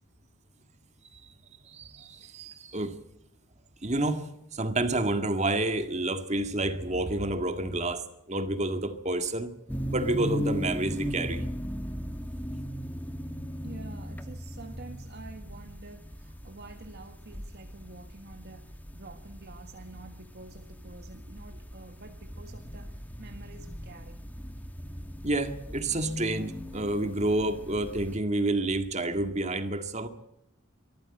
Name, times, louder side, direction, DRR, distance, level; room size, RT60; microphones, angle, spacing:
voice 1, 1.6-3.0 3.8-4.3 4.5-9.5 9.9-11.5 25.2-30.1, right 2 dB, 30° right, 1.9 m, -29 dB
sound 1, 9.7-28.2, equal, 10° left, 1.2 m, -38 dB
voice 2, 13.6-24.2, right 2 dB, 50° right, 1.6 m, -48 dB
24.0 x 14.0 x 9.0 m
head